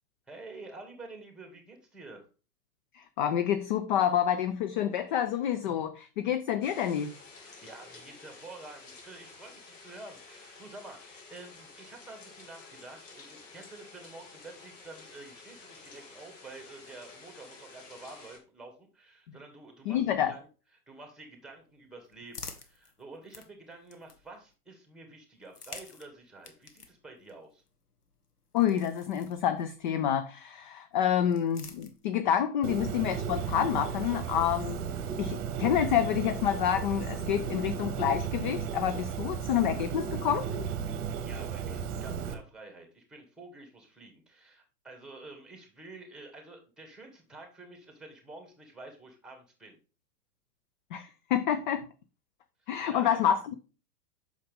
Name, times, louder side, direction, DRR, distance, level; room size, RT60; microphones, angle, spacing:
voice 1, 0.3-2.3 7.4-20.5 20.9-27.6 41.2-49.8 52.6-53.2, right 2 dB, ahead, 2.2 m, -49 dB
voice 2, 2.9-7.1 19.3-19.4 19.9-20.3 28.5-34.8 35.2-40.5 50.9-51.9 52.7-53.6, left 9 dB, 35° left, 0.5 m, -28 dB
sound 1, 6.6-18.4, left 4 dB, 50° left, 2.6 m, -51 dB
sound 2, 21.5-24.5 25.3-29.9 30.9-32.4, left 4 dB, 75° left, 1.4 m, -51 dB
Bird, 32.6-42.3, right 7 dB, 30° right, 1.4 m, -34 dB
8.4 x 6.3 x 3.5 m
figure-of-eight pair, 105°, 46 cm